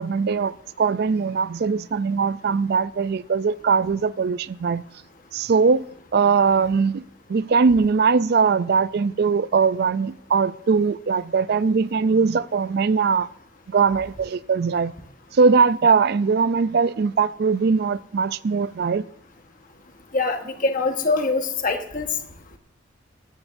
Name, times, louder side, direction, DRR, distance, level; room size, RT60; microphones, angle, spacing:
voice 1, 0.0-4.8 5.3-5.8 6.1-7.0 7.3-13.3 13.7-14.9 15.3-19.0, right 5 dB, 55° right, 0.4 m, -21 dB
voice 2, 20.1-22.1, left 3 dB, 45° left, 1.3 m, -23 dB
17.5 x 14.0 x 2.6 m
head